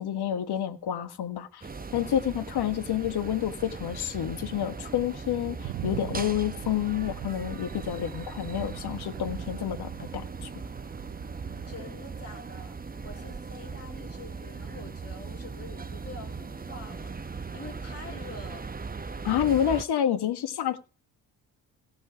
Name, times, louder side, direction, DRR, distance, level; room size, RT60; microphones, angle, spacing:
voice 1, 0.0-10.5 19.2-20.8, left 10 dB, 50° left, 1.4 m, -29 dB
sound 1, 1.6-19.8, right 4 dB, 20° right, 1.0 m, -39 dB
sound 2, 5.6-11.9, right 18 dB, 60° right, 0.7 m, -42 dB
voice 2, 11.7-17.1 17.5-18.8, left 2 dB, 30° left, 3.3 m, -46 dB
17.5 x 6.4 x 4.9 m
hypercardioid pair, 45°, 49 cm